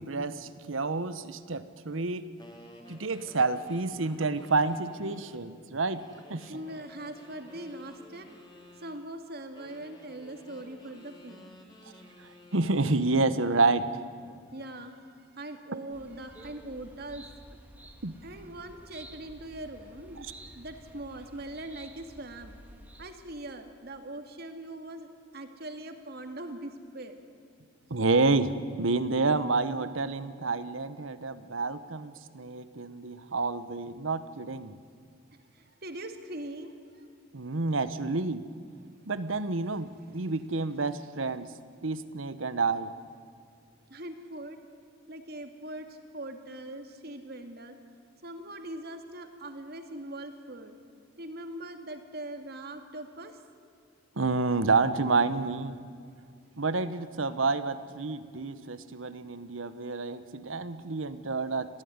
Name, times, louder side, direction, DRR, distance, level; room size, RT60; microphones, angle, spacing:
voice 1, 0.0-2.3 2.9-6.0 6.3-6.5 12.5-13.9 18.0-18.1 27.9-34.7 37.3-38.5 39.1-41.5 41.8-42.9 54.2-55.8 56.6-61.8, right 3 dB, 80° right, 13 dB, 1.1 m, -29 dB
sound 1, 2.4-5.5 6.0-8.9 9.5-13.1, left 1 dB, 20° left, 3.5 m, -53 dB
voice 2, 6.4-8.3 8.8-11.6 14.5-17.3 18.2-22.6 23.0-25.1 25.3-27.2 32.8-33.0 35.5-37.1 40.1-40.3 43.9-44.6 45.1-47.8 48.2-50.7 51.2-53.4, right 1 dB, 55° right, 6 dB, 2.2 m, -41 dB
sound 2, 15.9-23.1, right 1 dB, 10° right, 1.8 m, -51 dB
26.0 x 16.5 x 9.6 m, 2.3 s
head